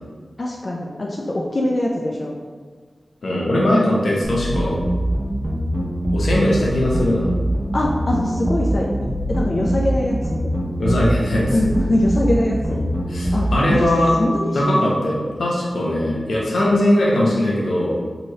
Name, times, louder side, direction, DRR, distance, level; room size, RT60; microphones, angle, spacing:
voice 1, 0.4-2.4 7.7-10.5 11.5-12.8 13.3-13.9 14.2-14.9, left 1 dB, 50° left, -2 dB, 0.3 m, -22 dB
voice 2, 3.2-4.8 6.1-7.3 10.8-11.7 13.1-14.1 14.5-17.9, left 1 dB, 85° left, -4 dB, 0.6 m, -20 dB
sound 1, 4.2-13.8, equal, 45° right, 0.5 m, -23 dB
3.0 x 2.7 x 2.7 m, 1.5 s
wide cardioid pair, 60°, 0 cm